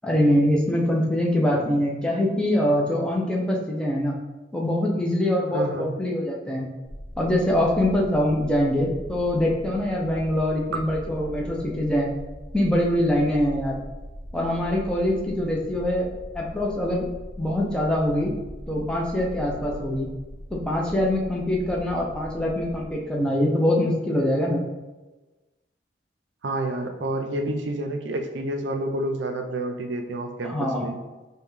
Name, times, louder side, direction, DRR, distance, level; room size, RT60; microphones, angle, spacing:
voice 1, 0.0-4.1 4.5-6.7 7.2-12.1 12.5-13.7 14.3-17.0 17.4-18.3 18.7-20.1 20.6-24.6 30.4-30.9, left 1 dB, 5° left, -3 dB, 0.6 m, -23 dB
voice 2, 5.5-6.0 26.4-31.0, right 1 dB, 80° right, 5 dB, 0.5 m, -29 dB
sound 1, 6.8-22.9, equal, 45° left, 0.7 m, -40 dB
5.2 x 2.3 x 3.2 m, 1.1 s
head